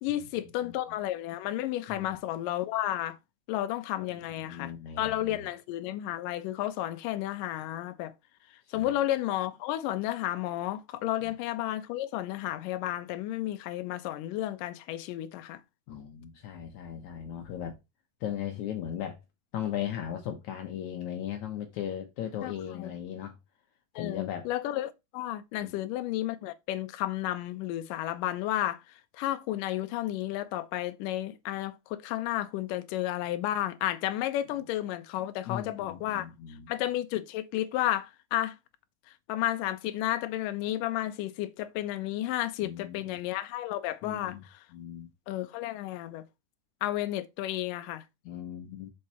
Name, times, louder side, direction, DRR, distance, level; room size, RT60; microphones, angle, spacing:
voice 1, 0.0-3.2 3.5-8.1 8.7-15.6 22.4-22.9 24.0-36.3 36.7-38.6 39.1-44.4 45.3-46.3 46.8-48.0, left 14 dB, 85° left, 2.3 m, -32 dB
voice 2, 4.4-5.5 8.8-8.9 15.9-17.8 18.2-19.2 19.5-23.3 23.9-24.5 25.6-25.9 35.5-36.7 42.6-43.2 44.0-44.4 44.7-45.1 48.3-48.9, left 10 dB, 70° left, 2.2 m, -37 dB
6.5 x 4.7 x 4.3 m
omnidirectional pair, 3.7 m